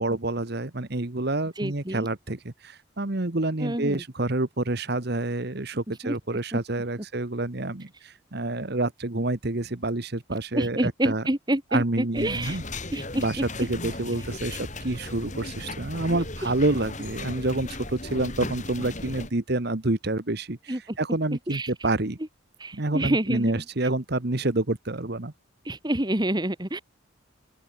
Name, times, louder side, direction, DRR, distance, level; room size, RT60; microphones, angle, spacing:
voice 1, 0.0-11.2 11.7-12.6 13.2-22.2 22.7-25.3, right 2 dB, 50° right, 1.4 m, -28 dB
voice 2, 1.6-2.1 3.6-4.0 6.0-6.1 6.5-6.6 10.5-12.6 12.9-13.2 20.7-20.8 21.5-21.7 22.6-23.6 25.6-26.8, right 1 dB, 20° right, 1.7 m, -27 dB
sound 1, 12.1-19.3, left 2 dB, 35° left, 5.5 m, -36 dB
open air
head